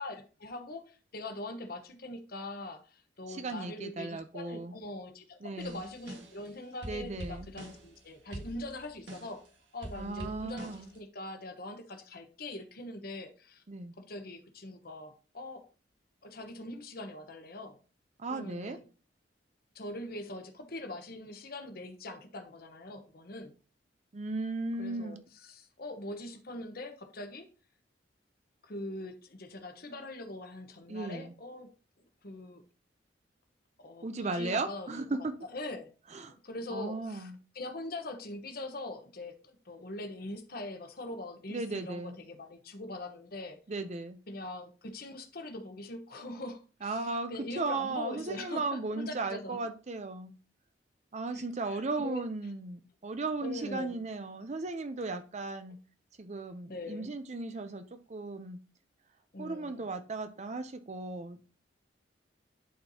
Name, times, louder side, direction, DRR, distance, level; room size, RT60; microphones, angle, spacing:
voice 1, 0.0-9.5 9.7-13.6 14.0-15.7 16.2-17.8 18.3-18.9 19.7-23.5 24.8-27.5 28.6-31.7 32.2-32.6 33.8-34.9 35.4-35.9 36.3-43.6 44.3-49.6 51.7-52.2 53.4-53.9 56.7-57.1 59.3-59.9, left 2 dB, 55° left, 1.1 m, -42 dB
voice 2, 3.3-4.8 5.4-5.8 6.8-7.5 9.9-10.9 13.7-13.9 18.2-18.8 24.1-25.2 30.9-31.3 34.0-35.4 36.1-36.4 36.7-37.4 41.5-42.2 43.7-44.2 46.8-50.3 51.1-55.8 56.2-58.6 59.4-61.6, right 3 dB, 40° right, 0.6 m, -36 dB
sound 1, 5.6-6.5 6.8-8.0 8.3-9.5 9.8-11.0, right 1 dB, 85° right, 1.9 m, -45 dB
11.0 x 4.5 x 2.8 m
head